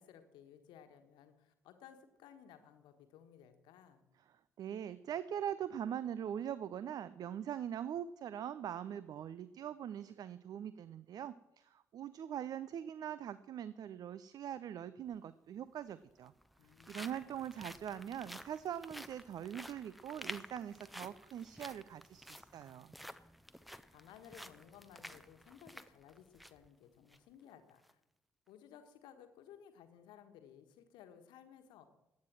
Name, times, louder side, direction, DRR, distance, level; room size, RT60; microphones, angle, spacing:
voice 1, 0.0-4.0 16.6-17.4 17.7-17.9 23.9-28.0 28.5-31.9, left 9 dB, 65° left, 8 dB, 1.4 m, -58 dB
voice 2, 4.6-16.3 16.9-22.9, right 9 dB, 50° right, 16 dB, 0.5 m, -42 dB
sound 1, 15.1-15.2 16.1-26.7 27.1-27.2 27.7-27.9, equal, ahead, 0.8 m, -52 dB
15.5 x 9.5 x 6.1 m, 0.88 s
figure-of-eight pair, 40°, 8 cm